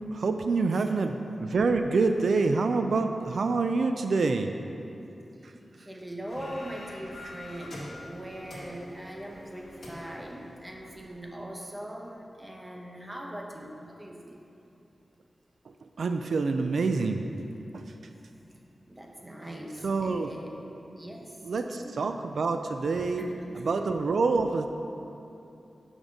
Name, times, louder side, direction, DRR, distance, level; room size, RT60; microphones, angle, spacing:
voice 1, 0.1-4.5 16.0-17.2 17.7-17.8 19.8-20.3 21.4-23.3 23.6-24.7, right 4 dB, 80° right, 6 dB, 0.3 m, -26 dB
voice 2, 0.7-1.2 5.3-14.4 18.9-20.6 21.0-22.0 23.2-23.8, right 1 dB, 10° right, 0 dB, 0.8 m, -41 dB
scaner factoria, 6.3-11.2, left 1 dB, 55° left, 1.7 m, -45 dB
6.2 x 5.1 x 6.3 m, 2.8 s
wide cardioid pair, 125°, 0 cm